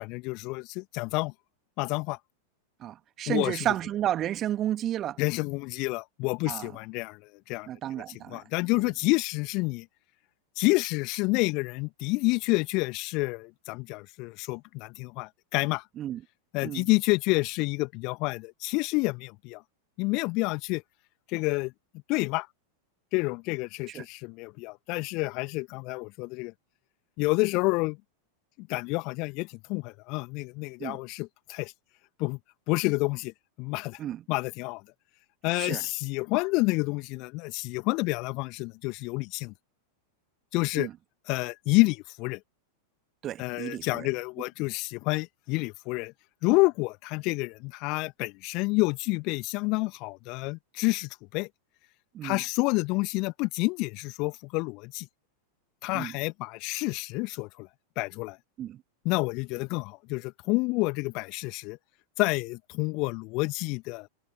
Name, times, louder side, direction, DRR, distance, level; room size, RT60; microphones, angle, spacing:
voice 1, 0.0-1.3 1.8-2.2 3.3-3.7 5.2-7.2 7.5-7.7 7.9-8.0 8.3-9.9 10.6-15.8 16.5-19.6 20.0-20.8 21.3-21.7 22.1-22.5 23.1-26.5 27.2-28.0 28.6-31.7 32.2-32.4 32.7-33.3 33.6-34.0 34.3-34.8 35.4-39.5 40.5-40.9 41.3-42.4 43.4-46.1 46.4-51.5 52.2-55.1 55.8-57.7 58.0-58.4 59.0-61.8 62.2-64.1, left 26 dB, 40° left, 2.1 m, -29 dB
voice 2, 2.8-5.2 6.5-6.7 7.7-8.4 16.0-16.2 16.6-16.9 23.9-24.0 30.8-31.0 34.0-34.2 35.5-35.8 40.8-40.9 43.2-44.1 52.1-52.4 55.9-56.1 58.6-58.8, right 12 dB, 30° right, 2.0 m, -32 dB
figure-of-eight pair, 90°, 0 cm